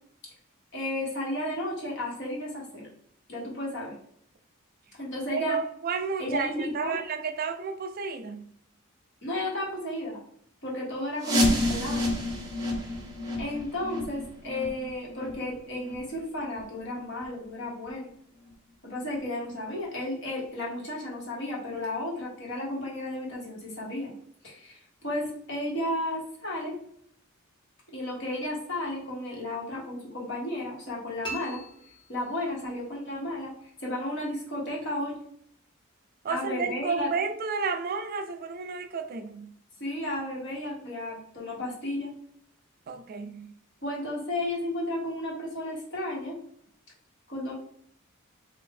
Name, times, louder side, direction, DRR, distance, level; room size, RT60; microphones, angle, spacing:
voice 1, 0.7-2.9 3.3-4.0 4.9-5.6 6.2-7.0 9.2-10.2 10.6-12.1 13.4-18.1 18.8-24.1 24.4-26.7 27.9-31.6 32.1-33.5 33.8-35.2 36.3-37.1 39.8-42.1 43.8-46.4 47.3-47.5, left 1 dB, 60° left, 1.4 m, -33 dB
voice 2, 5.3-8.5 36.2-39.5 42.9-43.5, right 5 dB, 45° right, 0.3 m, -32 dB
sound 1, 11.2-16.8 17.1-17.2 17.8-17.9 18.5-18.6 19.1-19.2, left 1 dB, 20° right, 0.8 m, -30 dB
sound 2, 31.2-32.8, right 1 dB, 25° left, 0.7 m, -41 dB
3.5 x 2.5 x 3.7 m
head